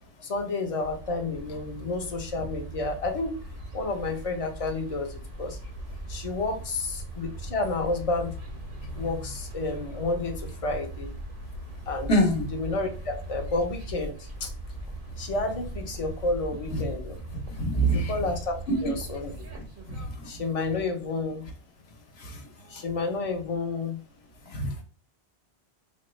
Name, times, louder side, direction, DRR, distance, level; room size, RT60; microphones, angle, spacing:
voice 1, 0.2-3.4 3.7-5.6 6.1-8.3 9.0-11.1 11.9-12.1 12.5-14.5 15.2-17.2 17.8-18.6 18.8-19.3 20.2-21.5 22.7-24.0, left 3 dB, 40° left, 4 dB, 0.6 m, -30 dB
sound 1, 0.8-20.1, right 1 dB, 55° right, 1.0 m, -39 dB
voice 2, 12.1-12.5 16.7-16.8 17.5-18.1 19.9-20.3 22.2-22.4 22.7-22.8 24.5-24.8, right 1 dB, 75° left, 3 dB, 1.1 m, -26 dB
4.2 x 2.3 x 3.1 m, 0.38 s
omnidirectional pair, 1.1 m